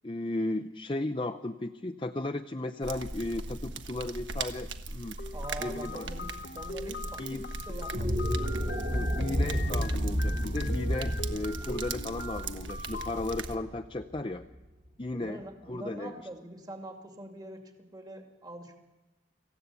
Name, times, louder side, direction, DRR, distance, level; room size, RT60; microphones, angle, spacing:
voice 1, 0.0-5.2 5.6-6.1 7.2-7.4 8.9-14.5 15.0-15.4 15.7-16.1, left 2 dB, 25° left, 5 dB, 0.6 m, -35 dB
sound 1, 2.8-13.6, right 3 dB, 80° right, 1.4 m, -39 dB
sound 2, 5.2-13.2, left 2 dB, 55° left, 1.1 m, -42 dB
voice 2, 5.3-8.2 15.1-18.8, right 1 dB, 20° right, 3 dB, 2.5 m, -44 dB
sound 3, 7.9-14.2, equal, 50° right, 5.4 m, -31 dB
26.0 x 15.5 x 8.4 m, 1.1 s
head